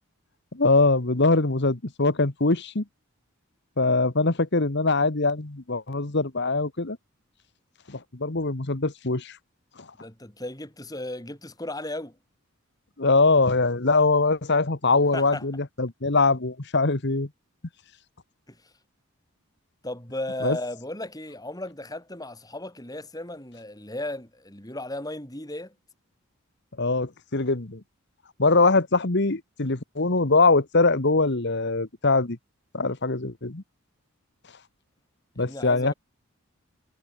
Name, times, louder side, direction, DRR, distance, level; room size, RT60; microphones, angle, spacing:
voice 1, 0.5-2.8 3.8-7.0 7.9-9.4 13.0-17.3 20.4-20.6 26.8-27.8 28.4-32.4 32.7-33.6 35.4-35.9, left 3 dB, 50° left, 1.4 m, -22 dB
voice 2, 10.0-12.2 15.1-15.4 18.5-18.7 19.8-25.8 35.4-35.9, left 1 dB, 15° left, 5.3 m, -35 dB
head